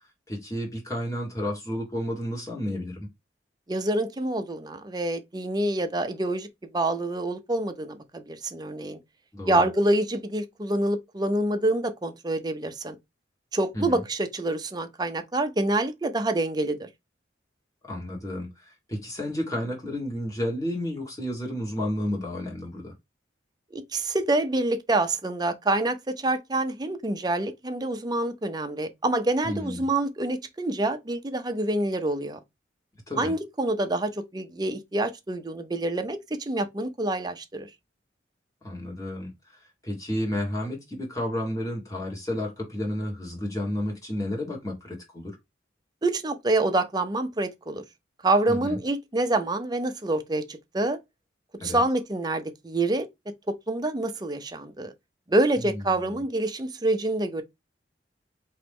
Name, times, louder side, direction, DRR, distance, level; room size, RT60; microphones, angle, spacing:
voice 1, 0.3-3.1 9.3-9.7 13.7-14.0 17.8-22.9 29.4-29.9 33.1-33.3 38.6-45.4 48.5-48.8 51.6-51.8 55.6-56.2, left 1 dB, 20° left, 1.5 m, -32 dB
voice 2, 3.7-6.5 6.7-9.0 9.5-13.0 13.5-16.9 23.7-32.4 33.2-37.7 46.0-47.8 48.2-51.0 51.6-53.1 53.5-54.9 55.3-57.4, right 2 dB, 20° right, 0.6 m, -27 dB
4.3 x 3.0 x 3.5 m
head